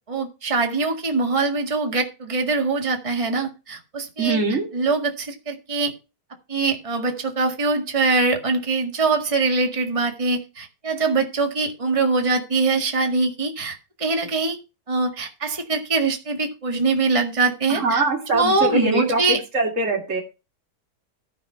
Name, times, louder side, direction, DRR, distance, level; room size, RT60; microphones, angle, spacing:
voice 1, 0.1-4.4 4.7-5.9 6.5-14.6 14.9-18.0 18.3-19.4, right 3 dB, 20° right, 3 dB, 1.8 m, -23 dB
voice 2, 4.2-4.7 17.7-20.2, right 2 dB, 45° right, 0 dB, 2.7 m, -23 dB
14.0 x 5.0 x 5.8 m, 0.28 s
omnidirectional pair, 1.8 m